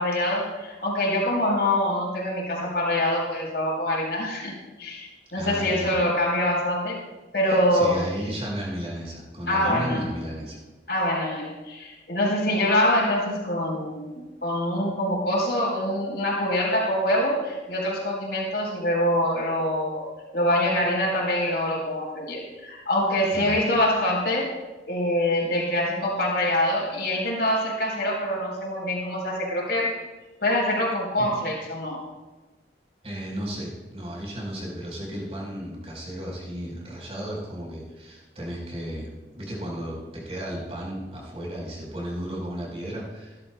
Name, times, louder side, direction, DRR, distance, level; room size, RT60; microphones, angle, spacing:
voice 1, 0.0-4.5 4.8-7.0 7.3-8.1 9.5-10.0 10.9-20.1 20.3-24.5 24.9-30.0 30.4-32.0, left 1 dB, 65° left, -3 dB, 4.0 m, -25 dB
voice 2, 5.3-5.9 7.5-10.6 23.3-23.6 33.0-43.4, equal, 35° right, -3 dB, 4.4 m, -34 dB
19.0 x 11.5 x 2.3 m, 1.1 s
head